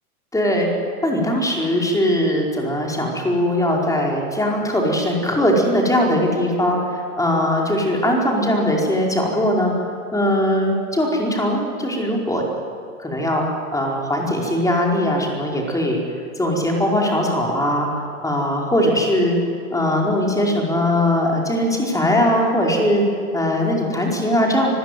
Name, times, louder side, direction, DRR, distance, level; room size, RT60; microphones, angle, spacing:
voice 1, 0.3-0.7 1.0-9.7 10.1-12.4 13.0-16.0 16.4-19.4 19.7-23.0 23.3-24.7, left 1 dB, 5° left, 0 dB, 4.8 m, -20 dB
25.0 x 15.5 x 9.3 m, 2.3 s
hypercardioid pair, 100°, 44 cm